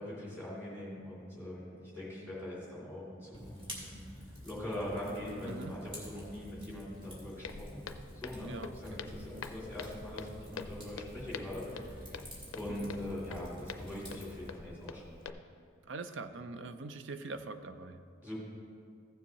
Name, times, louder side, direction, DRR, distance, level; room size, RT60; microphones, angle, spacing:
voice 1, 0.0-7.8 8.1-8.5 8.8-12.2 12.5-15.2 18.2-18.4, left 1 dB, 10° right, -8 dB, 2.6 m, -42 dB
Fire, 3.3-14.5, equal, 25° right, 2.1 m, -49 dB
voice 2, 5.4-5.8 8.4-9.0 9.3-9.5 12.7-12.9 15.9-18.0, right 3 dB, 60° right, 9 dB, 0.5 m, -43 dB
Walk footsteps, 7.4-15.3, left 5 dB, 85° left, 0.5 m, -46 dB
15.0 x 7.1 x 3.0 m, 2.3 s
head